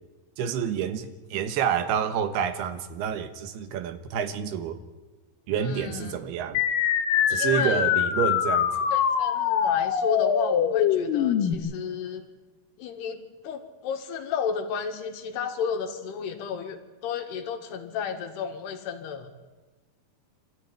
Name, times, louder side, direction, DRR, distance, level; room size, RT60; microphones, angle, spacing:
voice 1, 0.4-4.8 5.5-6.6 7.3-8.7, right 8 dB, 80° right, 10 dB, 3.2 m, -28 dB
voice 2, 5.6-6.2 7.3-7.8 8.7-12.3 12.8-19.3, left 6 dB, 85° left, 5 dB, 3.8 m, -32 dB
sound 1, 6.5-11.5, left 8 dB, 65° left, 2.7 m, -23 dB
26.0 x 13.5 x 9.6 m, 1.2 s
omnidirectional pair, 4.6 m